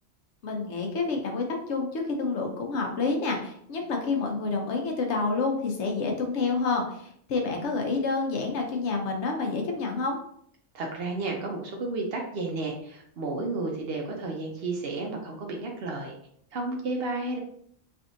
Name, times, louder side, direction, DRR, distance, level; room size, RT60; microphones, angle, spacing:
voice 1, 0.4-10.2, left 4 dB, 70° left, 2 dB, 0.9 m, -28 dB
voice 2, 10.7-16.1 16.5-17.4, right 2 dB, 60° right, 1 dB, 0.7 m, -32 dB
3.4 x 2.6 x 2.5 m, 0.67 s
omnidirectional pair, 1.2 m